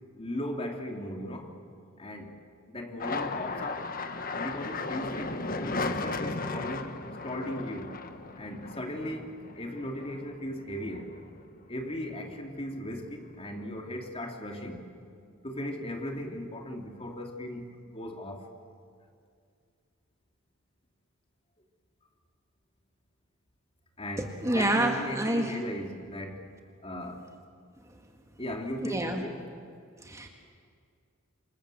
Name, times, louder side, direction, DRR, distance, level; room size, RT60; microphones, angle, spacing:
voice 1, 0.2-1.5 2.0-2.3 2.7-3.9 4.4-7.0 7.2-8.0 8.4-11.1 11.7-14.8 15.4-18.5 24.0-26.5 26.8-27.3 28.4-29.5, left 1 dB, 30° left, 2 dB, 3.0 m, -37 dB
sound 1, 3.0-11.7 12.1-12.9 13.2-14.1, left 3 dB, 45° left, 1.5 m, -36 dB
voice 2, 24.4-25.5 28.8-29.2 30.1-30.3, right 1 dB, 15° right, 3 dB, 1.9 m, -27 dB
27.5 x 27.0 x 7.9 m, 2.2 s
head